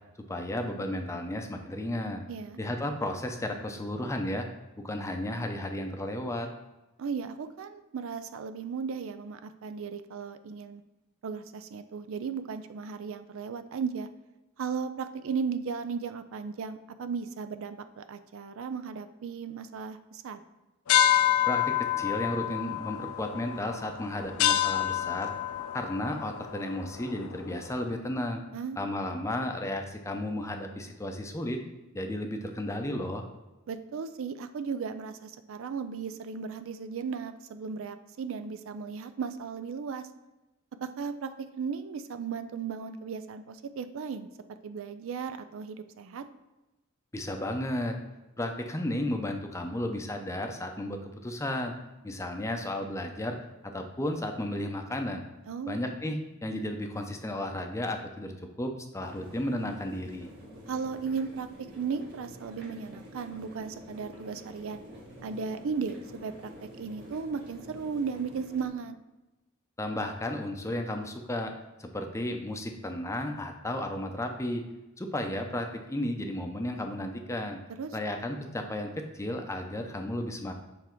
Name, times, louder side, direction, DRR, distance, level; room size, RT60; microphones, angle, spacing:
voice 1, 0.3-2.2 2.6-4.5 4.8-6.5 21.5-25.3 25.7-28.4 28.8-31.6 31.9-33.3 47.1-47.9 48.4-51.7 52.0-53.4 53.6-55.2 55.7-60.3 69.8-71.5 71.8-74.6 75.0-77.6 77.9-80.5, left 1 dB, 15° left, 4 dB, 0.6 m, -33 dB
voice 2, 2.3-2.6 7.0-10.8 11.2-14.1 14.6-20.4 28.5-28.8 33.7-40.1 40.8-41.3 41.6-44.3 44.6-46.2 55.5-55.8 60.7-64.8 65.2-69.0 77.7-77.9, right 5 dB, 70° right, 11 dB, 0.4 m, -36 dB
sound 1, 20.9-27.8, left 10 dB, 90° left, 0.4 m, -28 dB
sound 2, 59.0-68.7, equal, 55° right, 1.8 m, -48 dB
7.0 x 3.5 x 4.5 m, 1.0 s
head